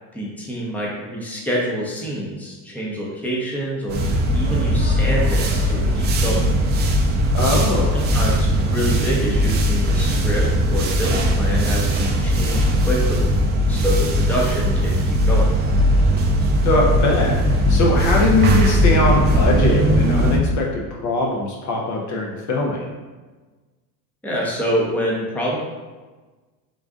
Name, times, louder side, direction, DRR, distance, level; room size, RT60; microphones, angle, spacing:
voice 1, 0.1-4.0 4.3-6.5 7.9-13.3 13.7-15.5 24.2-25.6, equal, 5° left, -4 dB, 0.8 m, -26 dB
sound 1, 3.9-20.4, equal, 25° right, 0.4 m, -19 dB
voice 2, 7.3-8.0 16.6-22.9, left 2 dB, 40° left, -1 dB, 0.7 m, -21 dB
3.8 x 2.5 x 3.6 m, 1.3 s
supercardioid pair, 100°, 45 cm